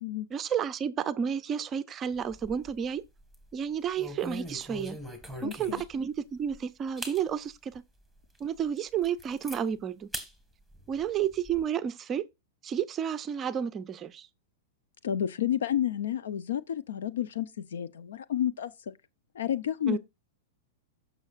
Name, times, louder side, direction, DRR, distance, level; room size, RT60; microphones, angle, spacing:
voice 1, 0.3-3.0 3.5-5.0 5.4-7.8 8.4-10.1 10.9-12.2 12.6-14.3 19.9-20.0, right 8 dB, 20° right, 0.5 m, -31 dB
sound 1, 2.1-2.8 3.2-3.4 4.0-6.0 6.5-6.6 7.0-7.2 7.7-7.8 8.3-8.4 8.8-9.6 10.1-10.3 10.7-11.6, equal, 5° left, 1.8 m, -41 dB
voice 2, 5.4-5.8 15.0-18.7 19.3-20.0, left 10 dB, 90° left, 0.7 m, -30 dB
15.5 x 6.2 x 2.5 m
supercardioid pair, 160°, 0 cm